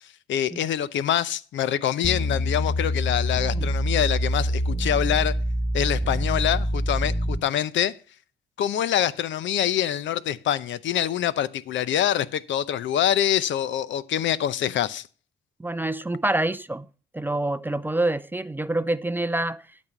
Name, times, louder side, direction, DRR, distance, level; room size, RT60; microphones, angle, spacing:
voice 1, 0.3-5.4 5.7-8.0 8.6-15.1, left 10 dB, 70° left, 0.7 m, -25 dB
sound 1, 2.0-7.4, equal, 10° left, 2.2 m, -25 dB
voice 2, 15.6-16.9 17.1-19.6, right 2 dB, 10° right, 0.4 m, -26 dB
12.0 x 4.3 x 6.0 m
cardioid pair, 90°, 20 cm